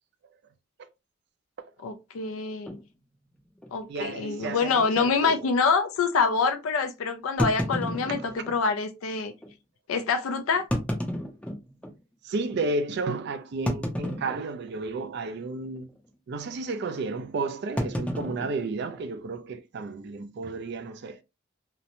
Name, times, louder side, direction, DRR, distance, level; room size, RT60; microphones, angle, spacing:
voice 1, 1.8-2.8 3.7-9.3 9.9-10.7, left 5 dB, 85° left, 0.4 m, -26 dB
sound 1, 2.7-2.8 3.6-3.7 4.0-4.1 4.7-4.8 7.4-8.6 9.4-9.5 10.5-12.0 12.5-12.6 13.7-14.7 15.0-15.4 15.6-16.0 17.8-19.4, equal, 5° left, 0.5 m, -31 dB
voice 2, 3.9-5.5 8.2-8.4 12.2-15.9 16.3-21.2, right 3 dB, 55° right, 0.4 m, -32 dB
2.9 x 2.0 x 2.5 m
head